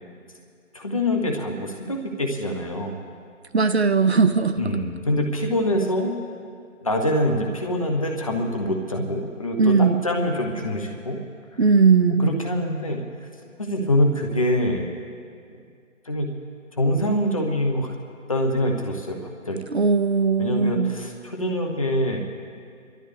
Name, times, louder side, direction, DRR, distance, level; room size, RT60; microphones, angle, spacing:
voice 1, 0.7-3.0 4.5-6.1 6.8-11.2 12.2-13.0 13.6-14.9 16.0-16.3 16.8-17.9 18.3-19.2 19.5-19.6 20.4-22.2, left 1 dB, 25° left, 1 dB, 0.9 m, -24 dB
voice 2, 3.5-4.7 9.6-10.0 11.6-12.3 19.7-21.0, right 5 dB, 55° right, 10 dB, 0.5 m, -19 dB
26.5 x 12.5 x 3.3 m, 2.3 s
figure-of-eight pair, 165°, 39 cm